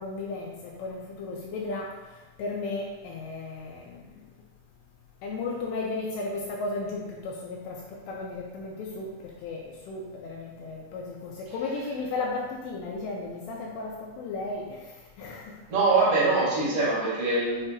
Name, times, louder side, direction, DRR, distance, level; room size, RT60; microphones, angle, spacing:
voice 1, 0.0-1.9 2.4-4.0 5.2-15.6, left 3 dB, 85° left, -2 dB, 2.6 m, -35 dB
voice 2, 15.7-17.7, right 3 dB, 60° right, -8 dB, 3.5 m, -23 dB
8.8 x 4.8 x 2.5 m, 1.2 s
omnidirectional pair, 5.5 m